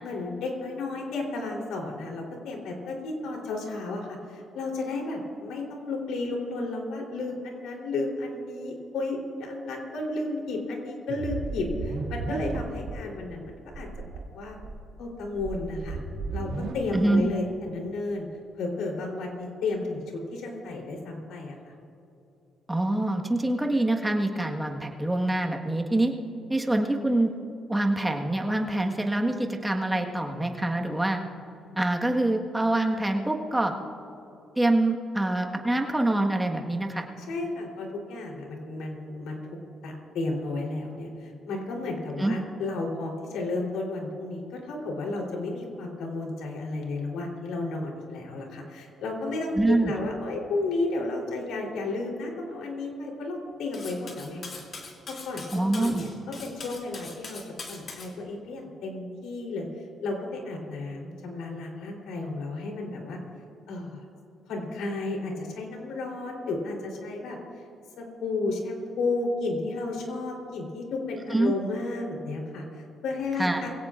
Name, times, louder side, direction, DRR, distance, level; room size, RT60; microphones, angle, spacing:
voice 1, 0.0-14.1 14.3-14.6 15.0-16.0 16.3-18.3 18.6-21.6 37.2-39.4 39.8-57.4 57.7-59.7 60.0-63.2 63.7-64.0 64.5-67.4 68.0-73.7, left 2 dB, 85° left, 0 dB, 3.5 m, -33 dB
sound 1, 11.1-13.0 13.3-13.4 13.7-14.2 14.6-16.7, right 3 dB, 70° right, 2.2 m, -34 dB
voice 2, 16.9-17.3 22.7-26.1 26.5-27.3 27.7-31.2 31.8-33.7 34.5-37.0 42.2-42.3 49.5-49.9 55.5-56.0 71.3-71.5 73.4-73.6, right 1 dB, 10° right, 2 dB, 1.5 m, -25 dB
Cutlery silverware, 53.7-58.1, left 3 dB, 40° left, 2.9 m, -42 dB
22.5 x 17.0 x 2.5 m, 2.9 s
cardioid pair, 110°, 0 cm